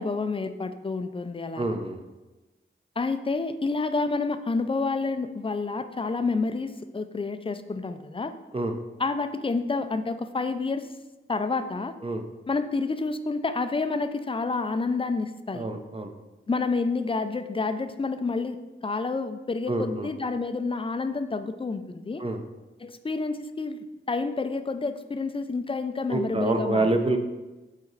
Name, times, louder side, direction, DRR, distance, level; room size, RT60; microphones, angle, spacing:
voice 1, 0.0-1.6 3.0-8.3 9.0-10.9 11.3-12.0 12.5-15.7 16.5-22.2 22.8-23.8 24.1-26.9, left 3 dB, 25° left, 10 dB, 0.4 m, -29 dB
voice 2, 1.6-2.0 8.5-8.7 12.0-12.2 15.5-16.1 19.7-20.1 22.2-22.4 26.1-27.2, right 2 dB, 25° right, 6 dB, 0.6 m, -27 dB
7.7 x 4.2 x 4.0 m, 1.1 s
wide cardioid pair, 95°, 21 cm